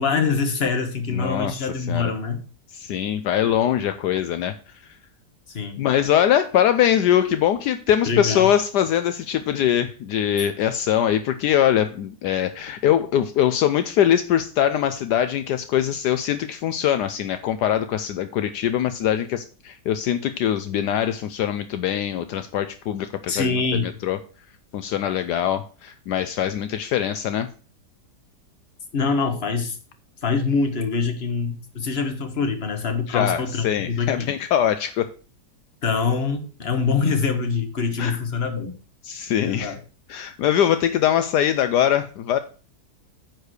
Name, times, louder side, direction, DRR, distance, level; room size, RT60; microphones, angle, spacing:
voice 1, 0.0-2.4 5.5-5.8 8.1-8.5 23.3-24.0 28.9-29.8 30.2-34.3 35.8-38.8 39.4-39.8, left 5 dB, 40° left, 1.6 m, -24 dB
voice 2, 1.1-2.1 2.7-4.5 5.8-24.2 24.7-27.5 33.1-35.1 38.0-38.2 39.0-39.8 40.1-42.4, left 10 dB, 75° left, 1.2 m, -22 dB
9.6 x 4.6 x 6.4 m
omnidirectional pair, 1.8 m